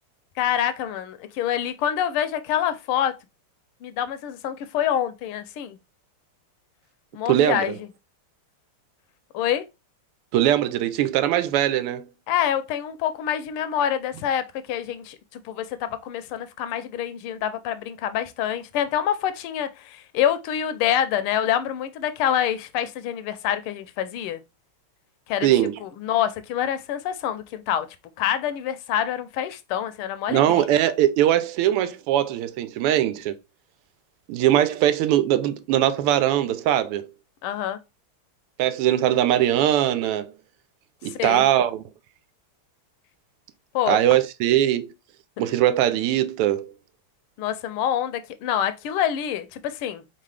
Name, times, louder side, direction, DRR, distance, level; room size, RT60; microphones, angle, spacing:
voice 1, 0.4-3.1 3.8-5.8 7.1-7.7 9.3-9.6 12.3-24.4 25.3-25.5 25.8-27.9 28.2-30.7 37.4-37.8 41.0-41.4 43.7-44.0 47.4-50.0, left 10 dB, 85° left, 1.5 m, -26 dB
voice 2, 7.3-7.8 10.3-12.1 25.4-25.8 30.3-33.4 34.3-37.1 38.6-40.3 41.0-41.9 43.9-44.9 45.4-46.7, right 12 dB, 90° right, 1.5 m, -21 dB
4.2 x 3.7 x 3.2 m
omnidirectional pair, 2.4 m